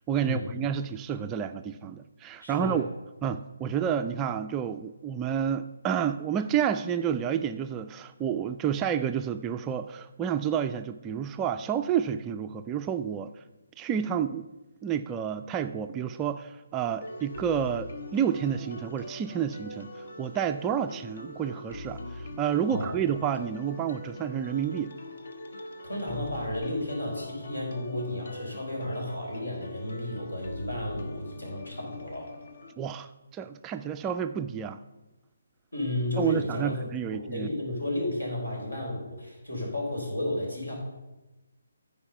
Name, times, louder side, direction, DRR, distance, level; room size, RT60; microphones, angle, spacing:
voice 1, 0.1-2.9 3.2-13.3 13.8-14.5 14.8-24.9 32.8-34.8 36.2-37.5, right 8 dB, 15° right, 8 dB, 0.3 m, -30 dB
voice 2, 2.4-2.8 22.7-22.9 25.8-32.3 35.7-36.8 37.1-40.7, left 1 dB, 75° left, -1 dB, 4.1 m, -33 dB
sound 1, 17.0-32.7, left 1 dB, 55° left, 1.1 m, -42 dB
14.0 x 4.8 x 5.5 m, 1.1 s
figure-of-eight pair, 145°, 0 cm